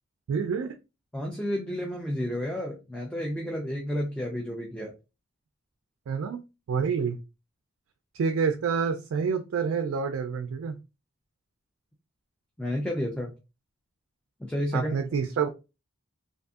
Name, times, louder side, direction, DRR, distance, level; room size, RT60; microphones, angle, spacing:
voice 1, 0.3-0.7 6.1-6.4 6.7-7.2 8.1-10.8 14.7-15.5, right 6 dB, 70° right, 8 dB, 0.3 m, -28 dB
voice 2, 1.1-4.9 12.6-13.3 14.4-15.0, equal, 5° left, -1 dB, 0.4 m, -31 dB
2.5 x 2.5 x 2.3 m, 0.28 s
head